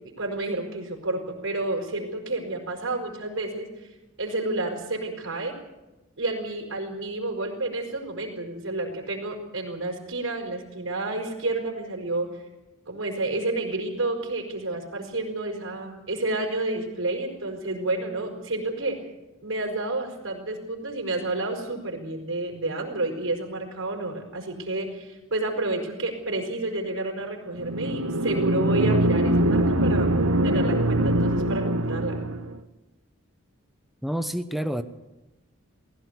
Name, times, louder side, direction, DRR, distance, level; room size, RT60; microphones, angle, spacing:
voice 1, 0.2-3.9 4.2-5.6 6.2-12.3 12.9-19.0 19.4-30.1 30.4-32.2, right 2 dB, 60° right, 1 dB, 5.1 m, -30 dB
sound 1, 27.6-32.5, right 1 dB, 75° right, 1.4 m, -23 dB
voice 2, 34.0-34.8, equal, ahead, 9 dB, 1.0 m, -28 dB
19.0 x 16.5 x 8.2 m, 1.0 s
head